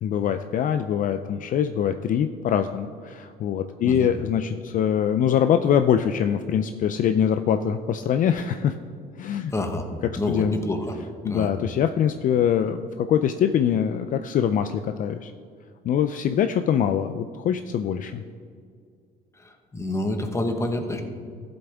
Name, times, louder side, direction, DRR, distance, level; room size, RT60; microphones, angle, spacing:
voice 1, 0.0-8.7 9.2-9.5 10.3-10.6 11.2-15.3 15.8-18.2, left 8 dB, 50° left, 9 dB, 0.4 m, -23 dB
voice 2, 9.5-9.9 10.2-11.0 11.2-11.5 19.3-21.0, left 2 dB, 15° left, 5 dB, 1.2 m, -28 dB
14.0 x 7.9 x 3.5 m, 2.1 s
cardioid pair, 110°, 17 cm